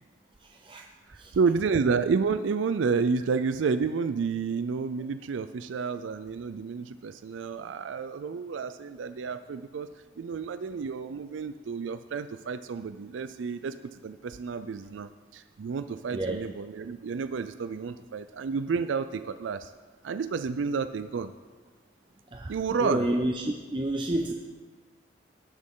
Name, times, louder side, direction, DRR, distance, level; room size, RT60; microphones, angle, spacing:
voice 1, 0.4-0.8 1.2-1.4 16.1-16.4 22.3-22.5 22.8-24.3, right 1 dB, 25° right, 2 dB, 0.5 m, -29 dB
voice 2, 1.1-13.7 14.0-19.7 20.0-21.3 22.5-23.1, right 5 dB, 90° right, 11 dB, 0.4 m, -30 dB
18.5 x 6.3 x 3.7 m, 1.4 s
head